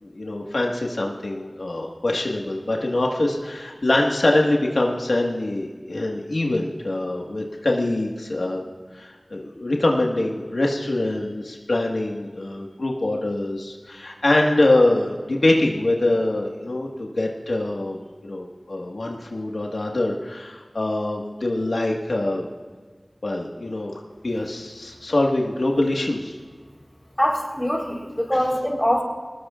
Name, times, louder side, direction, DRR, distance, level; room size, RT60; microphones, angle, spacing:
voice 1, 0.0-8.6 8.9-22.4 23.2-23.9 24.2-26.4 28.3-28.4, left 2 dB, 90° left, -1 dB, 1.6 m, -24 dB
voice 2, 27.2-29.0, equal, 10° left, -1 dB, 3.9 m, -23 dB
22.5 x 19.5 x 2.5 m, 1.5 s
wide cardioid pair, 55°, 0 cm